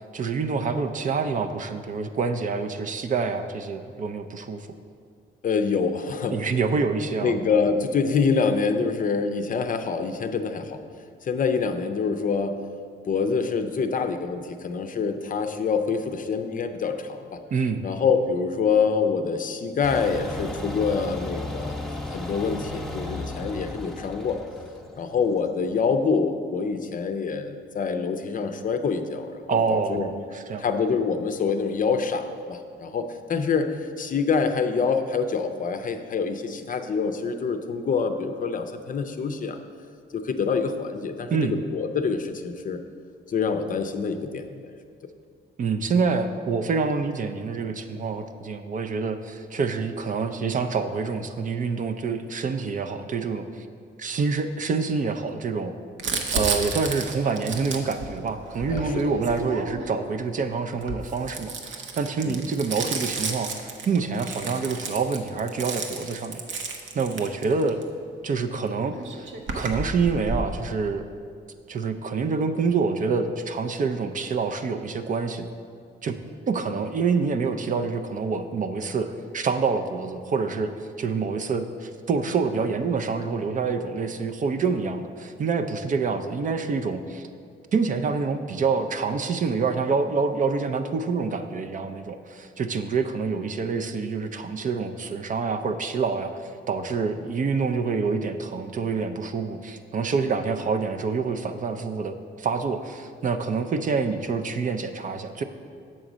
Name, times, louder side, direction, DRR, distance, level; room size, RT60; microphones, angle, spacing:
voice 1, 0.1-4.7 6.3-7.3 17.5-17.9 29.5-30.7 41.3-41.5 45.6-53.7 54.0-55.7 56.3-66.4 66.9-67.8 68.2-69.3 69.5-71.0 71.7-75.5 76.0-76.2 76.5-87.3 87.7-105.4, right 4 dB, 40° right, 8 dB, 0.5 m, -27 dB
voice 2, 5.4-6.4 7.2-10.8 11.2-12.6 13.1-17.4 17.8-21.8 22.1-24.4 24.9-30.1 30.6-39.6 40.1-42.8 43.3-44.7 58.7-59.1 62.2-62.4, left 5 dB, 40° left, 7 dB, 0.5 m, -26 dB
sound 1, 19.8-25.6, left 1 dB, ahead, 0.7 m, -35 dB
Crumpling crinkling, 56.0-60.0 60.7-67.8 68.7-68.8 68.9-70.5, right 3 dB, 70° right, 0.8 m, -32 dB
7.6 x 3.9 x 6.1 m, 2.3 s
cardioid pair, 90°, 20 cm